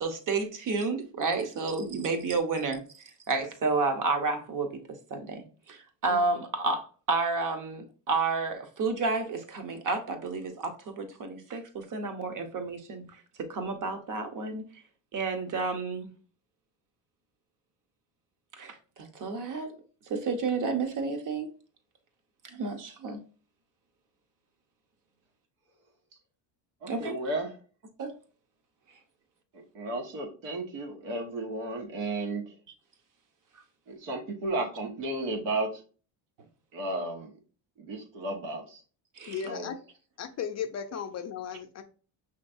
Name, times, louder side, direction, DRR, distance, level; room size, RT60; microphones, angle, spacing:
voice 1, 0.0-13.0 13.4-14.6 15.1-16.1 18.6-19.8 20.1-21.5 22.4-23.2 26.9-27.1 28.0-28.1 39.2-39.4, right 4 dB, 45° right, 1.0 m, -31 dB
voice 2, 26.8-27.5 29.5-32.4 33.9-35.8 36.7-37.3 37.8-38.8 39.4-39.7, right 2 dB, 85° right, 1.4 m, -33 dB
voice 3, 39.3-39.8 40.2-41.8, left 7 dB, 40° left, 0.5 m, -35 dB
5.8 x 3.1 x 2.6 m
cardioid pair, 115°, 45 cm